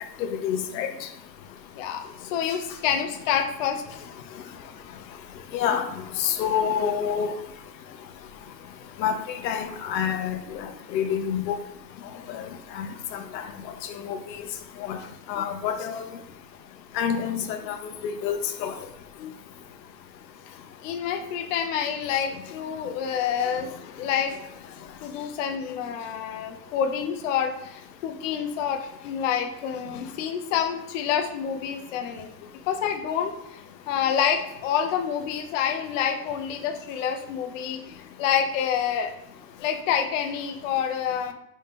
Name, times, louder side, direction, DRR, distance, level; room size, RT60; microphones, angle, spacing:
voice 1, 0.2-1.1 5.5-5.9 6.2-7.3 9.0-11.6 12.3-12.5 12.7-12.9 13.1-13.5 14.0-14.2 14.8-15.0 15.3-16.0 16.9-18.7, left 8 dB, 85° left, 7 dB, 0.8 m, -28 dB
voice 2, 1.8-4.1 15.0-15.1 15.3-15.4 19.2-19.3 20.8-24.4 25.0-32.3 32.7-33.6 33.9-39.1 39.6-41.3, left 8 dB, 50° left, 5 dB, 0.5 m, -28 dB
4.1 x 2.8 x 3.6 m, 0.82 s
supercardioid pair, 170°, 49 cm